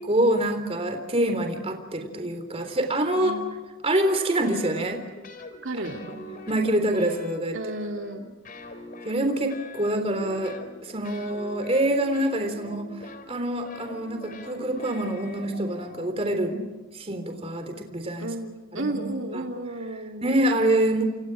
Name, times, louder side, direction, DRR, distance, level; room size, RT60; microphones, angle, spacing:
voice 1, 0.0-3.3 3.8-5.1 5.7-6.2 6.5-7.6 9.0-10.6 10.8-12.9 13.3-16.6 16.9-18.3 18.7-19.4 20.2-21.0, right 1 dB, 30° right, 6 dB, 3.8 m, -26 dB
voice 2, 3.1-3.6 5.6-6.0 7.5-8.3 16.5-16.8 18.2-20.4, right 2 dB, 65° right, 3 dB, 2.6 m, -33 dB
sound 1, 4.0-5.6 5.8-8.2 8.4-16.1, left 1 dB, 40° left, 3.6 m, -43 dB
29.5 x 28.0 x 4.9 m, 1.2 s
head